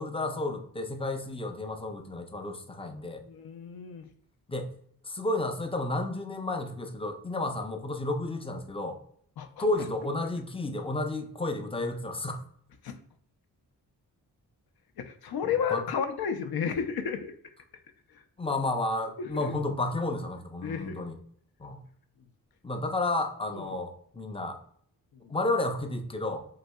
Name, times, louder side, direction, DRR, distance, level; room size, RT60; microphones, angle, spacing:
voice 1, 0.0-3.2 4.5-4.7 5.0-9.0 9.6-12.4 15.4-15.8 18.4-21.2 21.6-21.8 22.6-24.6 25.3-26.5, left 2 dB, 15° left, 6 dB, 0.5 m, -32 dB
voice 2, 3.3-4.0 9.4-9.7 12.8-12.9 15.0-17.3 20.6-21.0 23.5-23.7, left 7 dB, 60° left, 8 dB, 0.5 m, -32 dB
4.0 x 2.7 x 2.2 m, 0.63 s
supercardioid pair, 40°, 42 cm